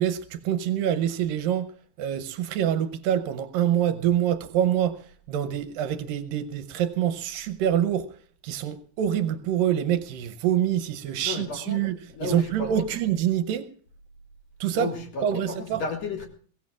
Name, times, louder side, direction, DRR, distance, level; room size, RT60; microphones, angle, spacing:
voice 1, 0.0-1.7 2.0-5.0 5.3-8.1 8.4-13.7 14.6-14.9 15.2-15.8, right 10 dB, 75° right, 2.4 m, -26 dB
voice 2, 11.2-12.9 14.7-16.3, left 4 dB, 50° left, 2.7 m, -33 dB
22.5 x 17.5 x 2.4 m
omnidirectional pair, 4.2 m